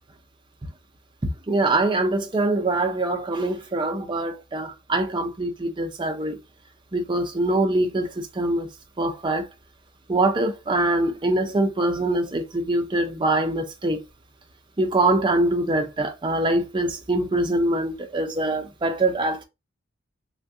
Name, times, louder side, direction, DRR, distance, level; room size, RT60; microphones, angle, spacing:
voice 1, 1.2-6.4 6.9-8.7 9.0-9.5 10.1-14.0 14.8-19.4, right 2 dB, 25° right, 0.5 m, -24 dB
3.4 x 2.2 x 2.6 m
head